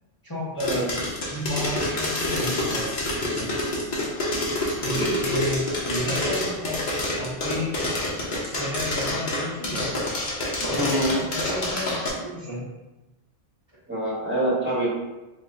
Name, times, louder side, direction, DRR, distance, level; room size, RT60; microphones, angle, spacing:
voice 1, 0.2-3.5 4.8-6.8 7.2-7.8 8.4-10.0 10.6-12.6, left 1 dB, 25° left, -10 dB, 0.8 m, -32 dB
sound 1, 0.6-12.1, left 1 dB, 50° left, 0.9 m, -27 dB
voice 2, 10.8-11.2 13.9-14.9, equal, 10° right, -9 dB, 1.1 m, -25 dB
3.0 x 2.4 x 4.1 m, 1.1 s
omnidirectional pair, 1.0 m